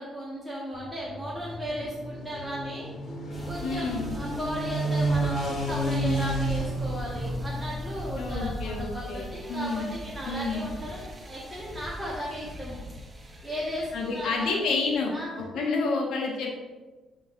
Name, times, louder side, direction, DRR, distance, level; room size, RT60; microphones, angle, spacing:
voice 1, 0.0-2.9 3.4-12.8 13.4-14.6 15.1-15.7, equal, 5° right, -6 dB, 1.5 m, -36 dB
sound 1, 0.7-8.4, right 1 dB, 60° left, 1.9 m, -31 dB
sound 2, 3.3-15.1, equal, 25° right, 0.9 m, -40 dB
voice 2, 3.6-4.1 8.1-10.0 10.3-10.7 13.9-15.1 15.5-16.6, left 3 dB, 80° left, -1 dB, 1.4 m, -29 dB
11.5 x 3.8 x 2.6 m, 1.2 s
cardioid pair, 90°, 0 cm